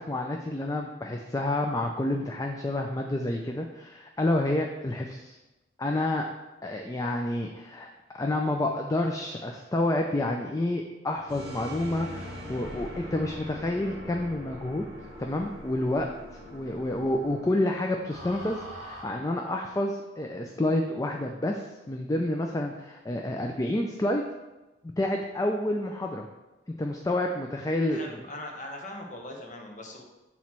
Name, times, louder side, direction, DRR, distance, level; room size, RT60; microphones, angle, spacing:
voice 1, 0.0-5.4 5.8-6.2 6.6-14.9 15.2-16.1 16.5-24.2 25.0-26.3 26.7-28.2, left 1 dB, 20° left, 2 dB, 0.4 m, -29 dB
sound 1, 11.3-19.0, left 1 dB, 35° right, 2.0 m, -42 dB
voice 2, 27.9-30.0, left 1 dB, 45° left, 2 dB, 1.0 m, -40 dB
7.3 x 3.1 x 6.0 m, 1.0 s
head